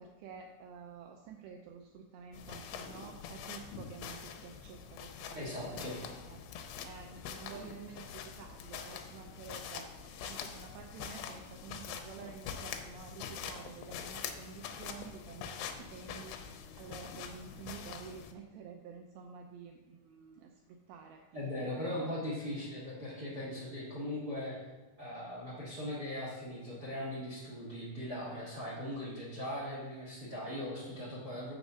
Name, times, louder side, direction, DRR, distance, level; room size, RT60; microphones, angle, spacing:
voice 1, 0.0-6.5 6.8-21.2 21.8-22.1, right 6 dB, 80° right, 3 dB, 2.2 m, -50 dB
sound 1, 2.3-18.3, left 7 dB, 85° left, 2.9 m, -45 dB
voice 2, 5.3-6.0 21.3-24.7 25.0-31.5, left 1 dB, 65° right, -5 dB, 0.9 m, -39 dB
7.1 x 6.6 x 5.5 m, 1.2 s
omnidirectional pair, 4.9 m